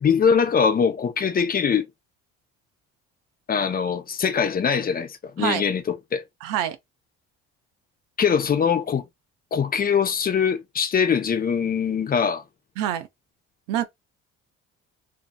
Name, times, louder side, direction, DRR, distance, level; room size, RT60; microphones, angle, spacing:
voice 1, 0.0-1.9 3.5-6.2 8.2-9.0 9.5-12.4, left 6 dB, 30° left, 0.5 m, -22 dB
voice 2, 6.4-6.8 12.8-13.1 13.7-13.8, right 11 dB, 85° right, 0.5 m, -25 dB
2.6 x 2.5 x 2.2 m
supercardioid pair, 85°, 31 cm